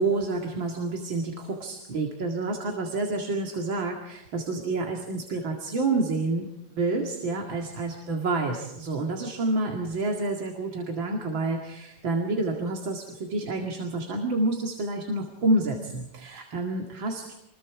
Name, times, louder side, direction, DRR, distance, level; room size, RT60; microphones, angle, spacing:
voice 1, 0.0-17.2, right 2 dB, 85° right, 1 dB, 3.0 m, -28 dB
28.0 x 22.0 x 4.9 m, 0.84 s
omnidirectional pair, 2.1 m